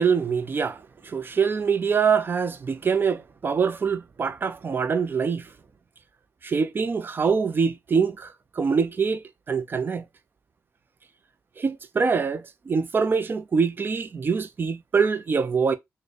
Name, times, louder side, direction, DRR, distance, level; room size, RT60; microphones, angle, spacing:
voice 1, 0.0-5.5 6.4-10.0 11.6-15.7, right 5 dB, 35° right, 0.4 m, -24 dB
4.0 x 2.2 x 3.2 m
cardioid pair, 110°, 6 cm